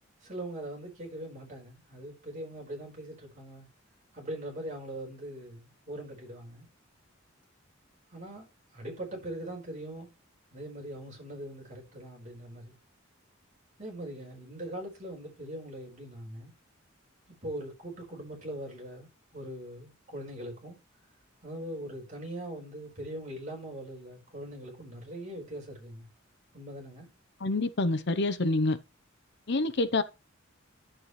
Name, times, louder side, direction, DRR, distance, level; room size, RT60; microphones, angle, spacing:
voice 1, 0.2-3.7 4.1-6.7 8.1-8.5 8.7-10.1 10.5-12.8 13.8-16.5 17.4-20.8 21.4-26.1 26.5-27.1, right 1 dB, 40° right, 4.7 m, -41 dB
voice 2, 27.4-28.8 29.5-30.0, left 2 dB, 55° left, 0.8 m, -27 dB
11.0 x 7.6 x 3.2 m
head